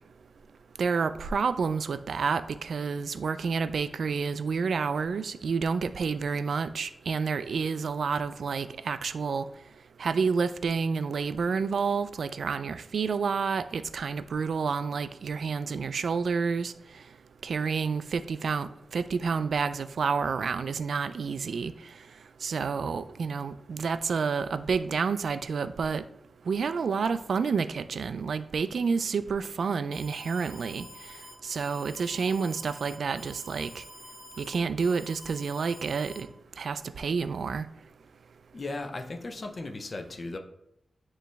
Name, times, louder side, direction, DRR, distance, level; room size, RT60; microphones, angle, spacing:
voice 1, 0.8-9.5 10.0-16.7 17.4-21.7 22.4-26.0 26.5-30.8 31.4-33.8 34.4-36.3 36.6-37.7, right 5 dB, 75° right, 13 dB, 0.3 m, -29 dB
Alarm, 29.9-36.2, left 1 dB, 85° left, 1.2 m, -48 dB
voice 2, 38.5-40.4, left 2 dB, 40° left, 5 dB, 0.5 m, -36 dB
9.1 x 3.1 x 3.4 m, 0.79 s
wide cardioid pair, 165°, 0 cm